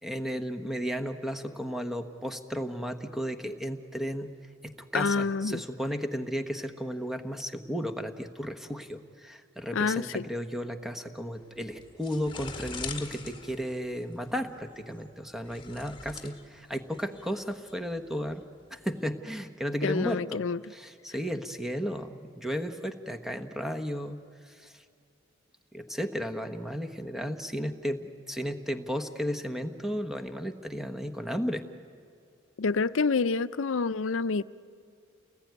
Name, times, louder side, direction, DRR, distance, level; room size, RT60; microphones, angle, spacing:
voice 1, 0.0-4.3 4.6-18.4 18.7-20.4 20.7-24.2 24.4-24.7 25.7-31.6, equal, ahead, 1.2 m, -34 dB
voice 2, 4.9-5.6 9.7-10.2 19.8-20.6 32.6-34.4, left 4 dB, 75° left, 0.6 m, -27 dB
sound 1, 11.3-19.0, left 5 dB, 25° left, 1.8 m, -44 dB
30.0 x 20.0 x 9.4 m
head